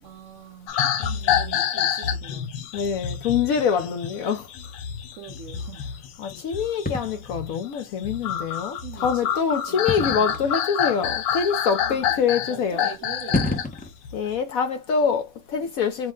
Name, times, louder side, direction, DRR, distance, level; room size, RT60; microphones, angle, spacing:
voice 1, 0.0-2.5 5.1-5.9 8.8-10.3 11.8-13.4, right 7 dB, 60° right, 0.9 m, -42 dB
sound 1, 0.7-13.7 14.1-14.4, left 9 dB, 85° left, 1.3 m, -28 dB
voice 2, 2.7-4.5 6.2-12.9 14.1-16.1, left 6 dB, 65° left, 0.9 m, -25 dB
sound 2, 6.9-7.2 9.9-10.4 11.3-11.4 12.8-12.9 13.2-13.9, left 2 dB, 15° left, 0.3 m, -26 dB
5.2 x 2.1 x 3.5 m
omnidirectional pair, 1.8 m